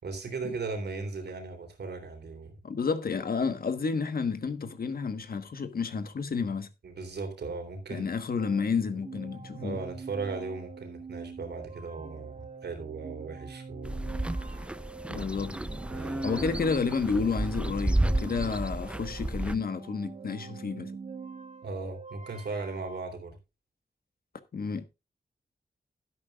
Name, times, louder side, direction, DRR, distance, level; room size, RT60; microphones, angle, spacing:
voice 1, 0.0-2.6 6.8-8.1 9.6-14.2 14.5-14.7 15.1-15.4 15.9-16.6 21.6-23.4, right 4 dB, 85° right, 3.4 m, -37 dB
voice 2, 2.6-6.7 7.9-9.8 15.1-15.6 16.2-20.9 24.5-24.9, left 5 dB, 60° left, 1.4 m, -30 dB
sound 1, 8.4-23.0, right 5 dB, 45° right, 1.3 m, -45 dB
sound 2, 13.8-19.6, right 1 dB, 5° right, 0.6 m, -32 dB
12.5 x 11.0 x 2.4 m
wide cardioid pair, 130°, 17 cm